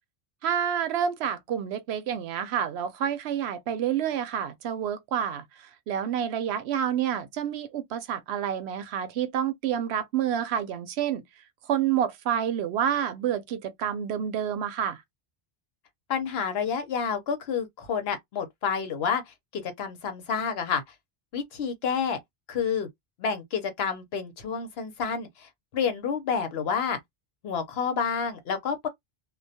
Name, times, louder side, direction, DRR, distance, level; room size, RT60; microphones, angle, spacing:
voice 1, 0.4-11.2 11.7-15.0, right 9 dB, 85° right, 0.8 m, -28 dB
voice 2, 16.1-20.8 21.3-22.2 22.5-22.9 23.2-27.0 27.4-28.9, left 6 dB, 75° left, 1.0 m, -29 dB
2.2 x 2.2 x 2.6 m
omnidirectional pair, 1.1 m